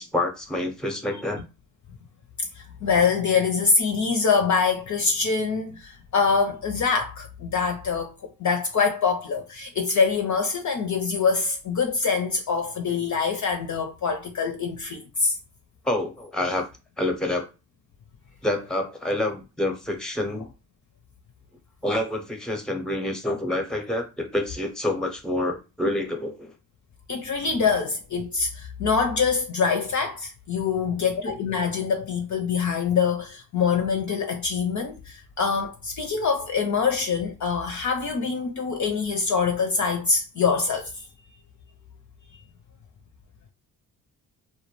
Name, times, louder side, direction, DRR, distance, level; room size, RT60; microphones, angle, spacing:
voice 1, 0.0-1.4 15.8-16.7 17.0-17.5 18.4-20.5 21.8-26.5, left 1 dB, ahead, 0.7 m, -27 dB
voice 2, 2.4-15.4 27.1-41.0, left 5 dB, 40° left, 0.5 m, -24 dB
2.2 x 2.0 x 3.1 m
hypercardioid pair, 45°, 45 cm